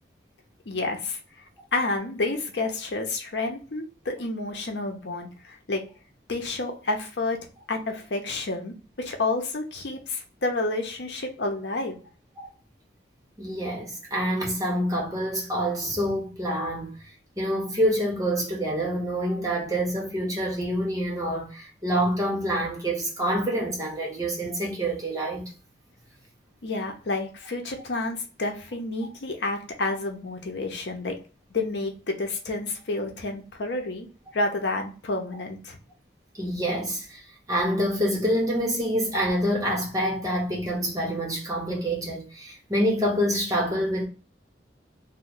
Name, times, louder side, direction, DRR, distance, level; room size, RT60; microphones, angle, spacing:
voice 1, 0.7-1.2 1.7-5.8 6.3-7.4 7.7-12.0 26.6-31.1 31.5-34.1 34.3-35.8, left 2 dB, 75° left, 0.7 m, -30 dB
voice 2, 13.4-16.9 17.4-25.5 36.3-37.2 37.5-44.1, equal, 20° right, 1.0 m, -27 dB
3.1 x 2.2 x 3.7 m
head